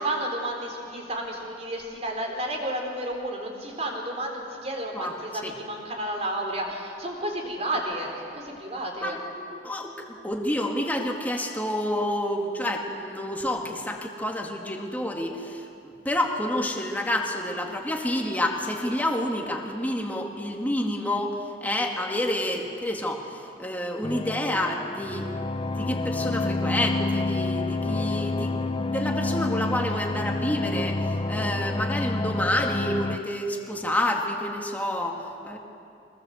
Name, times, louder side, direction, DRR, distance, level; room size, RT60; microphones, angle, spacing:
voice 1, 0.0-9.2, right 1 dB, 35° right, 1 dB, 3.9 m, -32 dB
voice 2, 9.0-35.6, left 1 dB, 10° left, 1 dB, 2.2 m, -29 dB
sound 1, 24.0-33.2, left 2 dB, 30° left, 0.6 m, -28 dB
24.0 x 19.5 x 8.0 m, 2.6 s
head